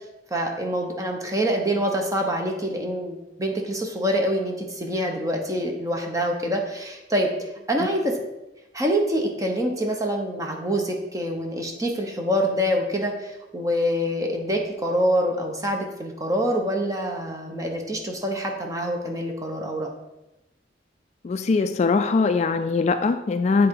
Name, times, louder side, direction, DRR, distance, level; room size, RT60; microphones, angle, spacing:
voice 1, 0.3-8.2 8.7-19.9, equal, 20° right, 2 dB, 0.9 m, -26 dB
voice 2, 21.2-23.7, left 4 dB, 40° left, 9 dB, 0.3 m, -21 dB
8.0 x 3.8 x 4.6 m, 0.96 s
head